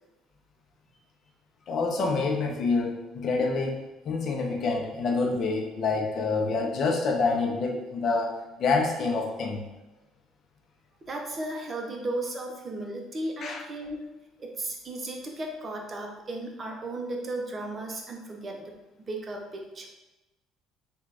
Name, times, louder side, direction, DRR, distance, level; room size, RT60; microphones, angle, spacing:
voice 1, 1.7-8.3 8.6-9.6 13.4-13.6, left 3 dB, 55° left, 1 dB, 0.7 m, -27 dB
voice 2, 11.0-14.1 14.4-18.7 19.1-19.9, right 2 dB, 35° right, 1 dB, 0.7 m, -35 dB
3.5 x 2.4 x 3.3 m, 1.0 s
supercardioid pair, 85°, 0 cm